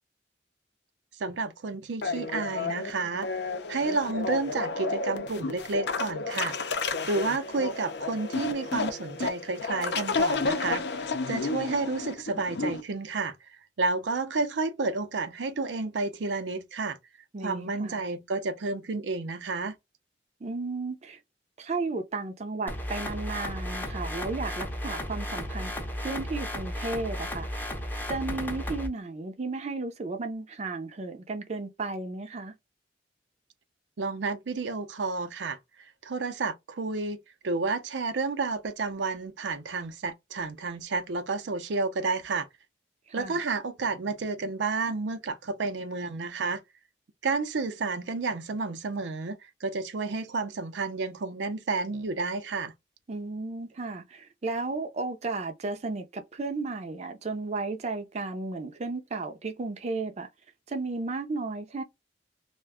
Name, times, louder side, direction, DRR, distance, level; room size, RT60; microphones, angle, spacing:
voice 1, 1.2-3.3 3.7-6.6 7.1-17.0 17.4-19.8 34.0-37.2 37.4-42.5 43.1-46.6 47.2-52.7, right 3 dB, 90° right, 0.5 m, -31 dB
sound 1, 2.0-12.8, left 4 dB, 70° left, 0.6 m, -31 dB
voice 2, 17.3-18.0 20.4-21.2 21.6-25.7 26.0-27.7 28.1-32.5 43.2-43.4 53.1-60.3 60.7-61.8, right 3 dB, 40° right, 0.4 m, -34 dB
sound 2, 22.7-28.9, left 1 dB, 10° left, 0.6 m, -34 dB
2.4 x 2.2 x 3.4 m
head